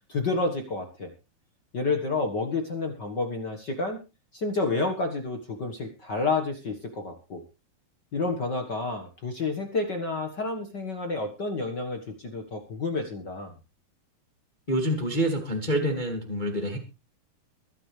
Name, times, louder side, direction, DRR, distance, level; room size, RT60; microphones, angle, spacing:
voice 1, 0.1-1.1 1.7-4.0 4.3-7.4 8.1-13.5, left 3 dB, 50° left, 5 dB, 1.2 m, -30 dB
voice 2, 14.7-16.8, equal, 15° left, 2 dB, 1.7 m, -27 dB
23.5 x 9.9 x 3.3 m, 0.30 s
omnidirectional pair, 4.3 m